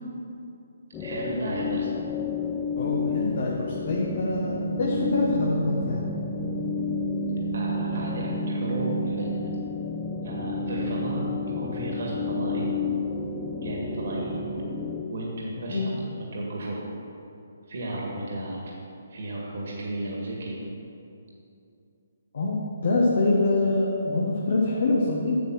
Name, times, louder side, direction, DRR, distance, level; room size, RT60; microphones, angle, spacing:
sound 1, 0.9-15.0, left 2 dB, 15° left, 0.7 m, -30 dB
voice 1, 1.0-1.9 7.5-9.5 10.2-11.3 11.6-12.7 13.6-14.5 15.1-15.9 16.3-16.8 17.7-18.7 19.1-20.6, right 1 dB, 65° right, -3 dB, 1.9 m, -33 dB
voice 2, 2.8-6.1 15.7-16.0 22.3-25.4, left 2 dB, 65° left, -3 dB, 1.3 m, -25 dB
8.8 x 6.5 x 6.2 m, 2.6 s
hypercardioid pair, 150°, 0 cm